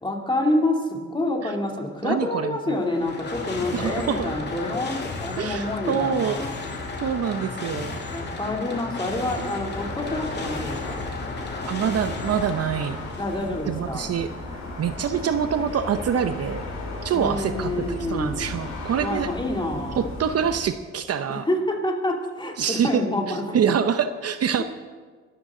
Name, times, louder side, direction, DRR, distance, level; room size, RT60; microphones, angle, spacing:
voice 1, 0.0-6.5 8.1-11.1 13.2-14.1 17.1-18.4 19.0-20.1 21.3-23.6, left 1 dB, 15° left, 0 dB, 2.9 m, -27 dB
voice 2, 2.0-2.8 3.7-4.3 5.4-6.4 7.0-8.0 11.7-13.0 13.7-14.3 14.8-16.6 17.0-19.3 20.0-21.5 22.6-24.6, right 7 dB, 55° right, 10 dB, 0.8 m, -25 dB
sound 1, 2.7-13.6, left 3 dB, 35° left, 2.6 m, -34 dB
sound 2, 9.7-20.6, left 2 dB, 75° left, 5.7 m, -35 dB
23.0 x 13.0 x 3.8 m, 1.5 s
cardioid pair, 90°, 30 cm